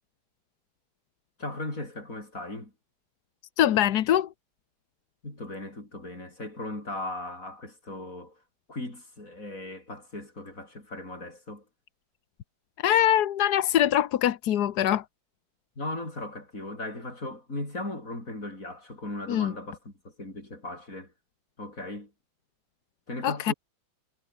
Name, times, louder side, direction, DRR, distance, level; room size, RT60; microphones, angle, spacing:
voice 1, 1.4-2.7 5.2-8.4 8.7-11.7 15.8-21.1 21.6-22.1 23.1-23.5, left 2 dB, 40° left, 7.7 m, -37 dB
voice 2, 3.6-4.3 12.8-15.0 19.3-19.5 23.2-23.5, left 11 dB, 60° left, 1.2 m, -23 dB
omnidirectional pair, 2.3 m